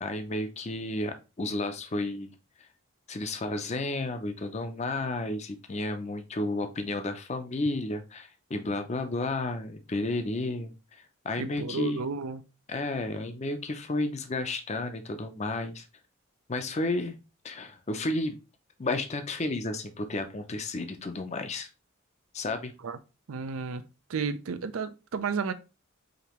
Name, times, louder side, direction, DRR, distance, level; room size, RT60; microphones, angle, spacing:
voice 1, 0.0-2.3 2.6-2.7 3.1-12.0 12.7-15.9 16.5-17.2 17.4-18.4 18.8-21.7 22.3-22.7, left 2 dB, 35° left, 0.5 m, -32 dB
voice 2, 11.4-12.4 22.8-23.0 23.3-25.5, right 5 dB, 85° right, 0.5 m, -32 dB
5.1 x 2.8 x 3.0 m
head